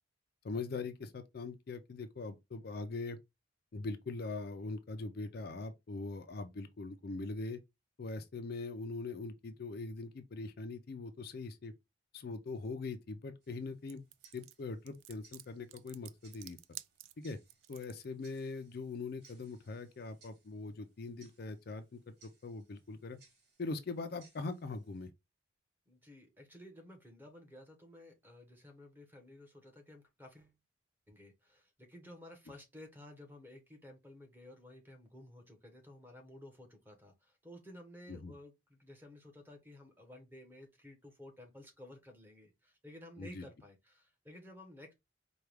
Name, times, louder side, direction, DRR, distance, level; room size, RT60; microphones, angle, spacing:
voice 1, 0.4-3.2 3.7-7.6 8.0-11.7 12.1-14.0 14.3-16.6 17.2-17.4 17.7-23.2 23.6-25.1 38.1-38.3 43.2-43.5, left 3 dB, 50° left, 0.4 m, -42 dB
Tick-tock, 13.4-25.1, right 4 dB, 50° right, 2.6 m, -68 dB
sound 1, 13.9-18.1, right 15 dB, 85° right, 0.3 m, -51 dB
voice 2, 25.9-30.5 31.1-44.9, left 1 dB, 10° right, 1.1 m, -54 dB
4.5 x 2.3 x 3.3 m
head